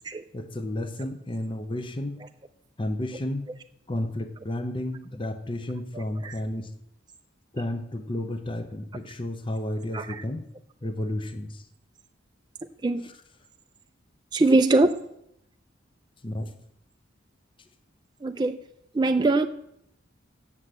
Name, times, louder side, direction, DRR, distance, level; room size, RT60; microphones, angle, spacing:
voice 1, 0.3-2.2 2.8-3.4 3.9-6.7 7.5-10.4 10.8-11.6 13.0-13.2 16.2-16.5, left 1 dB, 25° left, 8 dB, 0.8 m, -32 dB
voice 2, 14.3-15.0 18.2-18.6 18.9-19.5, right 2 dB, 20° right, 7 dB, 0.3 m, -22 dB
7.9 x 7.5 x 8.0 m, 0.79 s
head